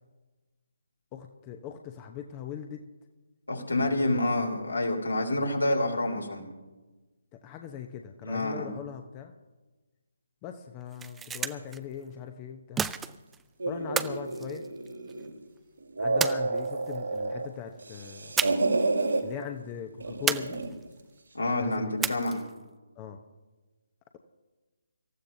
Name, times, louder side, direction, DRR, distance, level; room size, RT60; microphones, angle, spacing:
voice 1, 1.1-2.8 5.4-5.5 7.3-9.3 10.4-12.9 13.7-14.7 16.0-18.3 19.2-20.6 21.6-22.1 23.0-23.2, left 8 dB, 20° left, 5 dB, 0.8 m, -40 dB
voice 2, 3.5-6.4 8.2-8.7 21.3-22.4, left 1 dB, 80° left, 1 dB, 3.3 m, -28 dB
sound 1, 10.8-11.8 12.8-13.4 14.0-15.2 16.2-17.0 18.4-18.8 19.1-19.2 20.3-21.0 22.0-22.6, right 7 dB, 10° right, 0.4 m, -32 dB
sound 2, 13.6-15.4 15.8-17.5 17.8-19.2 20.0-20.8, right 3 dB, 70° right, 2.3 m, -30 dB
26.0 x 14.5 x 2.7 m, 1.2 s
figure-of-eight pair, 140°, 0 cm